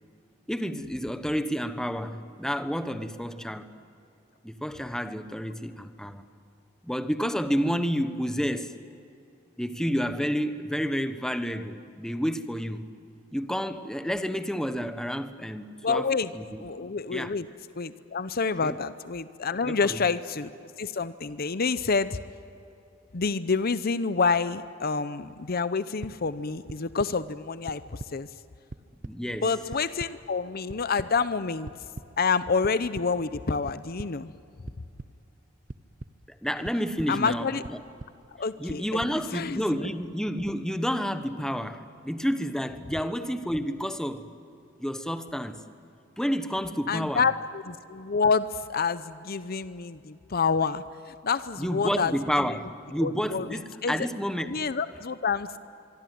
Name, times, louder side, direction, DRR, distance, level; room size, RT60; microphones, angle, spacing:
voice 1, 0.5-3.7 4.4-6.2 6.8-8.7 9.6-12.9 13.3-16.6 17.1-17.3 18.6-18.8 19.7-20.0 29.0-29.5 36.4-37.8 38.6-44.3 44.8-45.6 46.2-47.3 51.6-54.6, equal, 5° left, 1.2 m, -30 dB
voice 2, 15.8-16.3 16.6-17.5 17.7-20.5 20.8-22.2 23.1-28.3 29.4-31.7 32.2-34.3 37.1-37.6 38.4-39.0 39.3-39.6 46.9-52.6 53.0-54.1 54.5-55.6, left 5 dB, 50° left, 0.7 m, -28 dB
sound 1, 26.0-26.1 26.7-27.1 27.7-28.1 28.5-29.1 29.7-30.1 30.7-31.1 31.7-32.1 32.6-33.1 33.7-34.1 34.7-35.1 35.7-36.1 36.6-37.1 37.6-38.1 38.7-39.1, right 2 dB, 40° right, 0.8 m, -39 dB
24.5 x 24.5 x 9.3 m
head